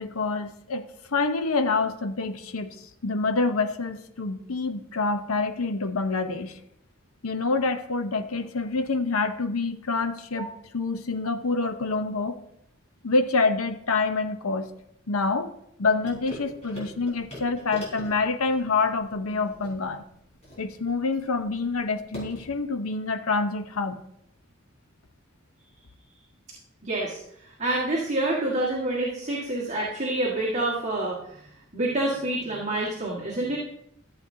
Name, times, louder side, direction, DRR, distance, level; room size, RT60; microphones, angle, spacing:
voice 1, 0.0-6.6 7.2-12.4 13.0-14.7 15.1-15.5 15.8-20.0 20.6-24.0, left 3 dB, 85° left, 8 dB, 0.8 m, -27 dB
sound 1, 16.0-22.6, left 1 dB, 30° left, 4.4 m, -44 dB
voice 2, 26.8-27.2 27.6-31.5 31.7-33.6, right 2 dB, 35° right, -5 dB, 1.7 m, -27 dB
13.5 x 7.8 x 2.7 m, 0.74 s
head